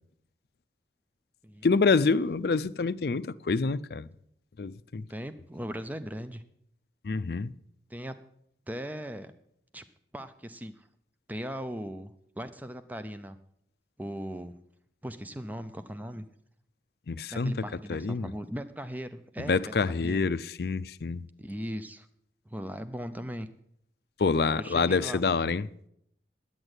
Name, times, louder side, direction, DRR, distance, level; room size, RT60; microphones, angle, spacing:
voice 1, 1.6-4.1 4.6-5.0 7.0-7.5 17.1-17.6 17.9-18.3 19.5-21.3 24.2-25.7, left 4 dB, 60° left, 0.5 m, -27 dB
voice 2, 5.1-6.4 7.9-8.2 8.7-9.3 9.7-9.8 10.1-10.9 11.3-13.4 14.0-14.6 15.0-16.3 17.3-19.6 20.0-20.2 21.4-22.1 22.5-23.5 24.6-25.2, equal, 10° right, 0.6 m, -38 dB
11.0 x 8.9 x 8.0 m
head